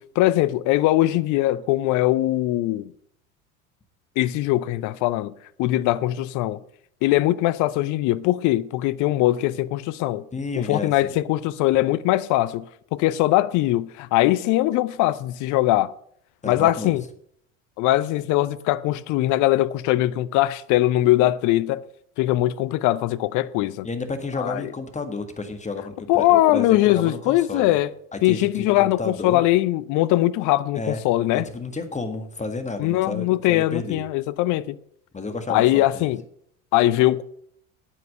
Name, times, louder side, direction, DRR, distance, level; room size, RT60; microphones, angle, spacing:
voice 1, 0.0-2.9 4.2-5.3 5.6-6.6 7.0-10.2 10.6-15.9 16.4-17.0 17.8-21.8 22.2-23.9 24.4-24.7 26.1-27.9 28.2-31.4 32.8-34.8 35.5-36.2 36.7-37.2, left 16 dB, 45° left, 0.6 m, -21 dB
voice 2, 10.3-11.2 16.4-16.9 23.8-27.8 28.1-29.4 30.8-31.0 31.3-34.0 35.1-36.1, left 3 dB, 15° left, 1.6 m, -31 dB
9.2 x 8.5 x 6.7 m
hypercardioid pair, 70°, 41 cm